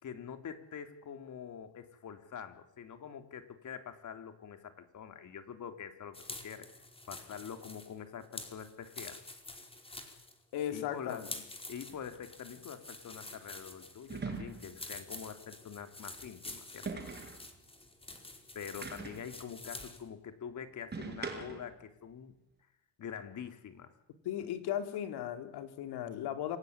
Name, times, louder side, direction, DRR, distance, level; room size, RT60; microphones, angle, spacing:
voice 1, 0.0-6.2 6.4-6.7 7.1-9.2 10.7-11.3 11.7-17.0 18.6-22.3 23.0-23.9 24.4-24.5, left 7 dB, 40° left, 8 dB, 3.7 m, -45 dB
sound 1, 6.1-20.1, left 2 dB, 10° left, 4.7 m, -48 dB
voice 2, 10.5-11.3 24.2-26.6, left 10 dB, 60° left, 8 dB, 3.7 m, -36 dB
sound 2, 11.9-12.0 14.1-14.8 16.9-17.4 18.8-19.3 20.9-21.7, right 4 dB, 20° right, 6.8 m, -41 dB
27.5 x 18.5 x 9.8 m, 0.87 s
supercardioid pair, 105°, 44 cm